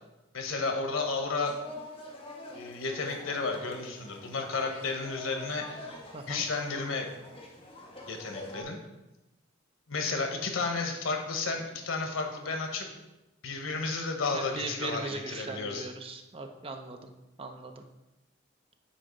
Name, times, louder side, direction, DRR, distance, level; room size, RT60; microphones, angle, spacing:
voice 1, 0.3-1.6 2.5-5.8 6.3-7.1 8.1-8.8 9.9-12.9 13.4-15.9, left 4 dB, 90° left, 3 dB, 1.1 m, -32 dB
sound 1, 1.4-8.6, left 1 dB, 25° left, 1.0 m, -46 dB
voice 2, 6.1-6.5 14.3-17.1 17.4-17.8, right 3 dB, 30° right, 5 dB, 0.5 m, -39 dB
8.6 x 2.9 x 5.1 m, 0.97 s
head